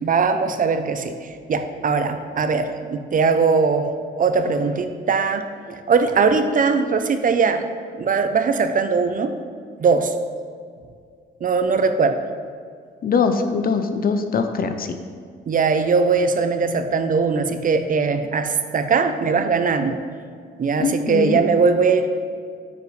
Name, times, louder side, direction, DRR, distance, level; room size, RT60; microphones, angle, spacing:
voice 1, 0.0-3.9 4.2-7.6 8.0-9.4 9.8-10.1 11.4-12.2 15.5-20.0 20.6-22.1, right 5 dB, 45° right, 8 dB, 0.7 m, -20 dB
voice 2, 13.0-15.0 20.8-21.4, left 5 dB, 45° left, 8 dB, 0.7 m, -22 dB
9.1 x 7.2 x 3.3 m, 2.1 s
cardioid pair, 90°, 20 cm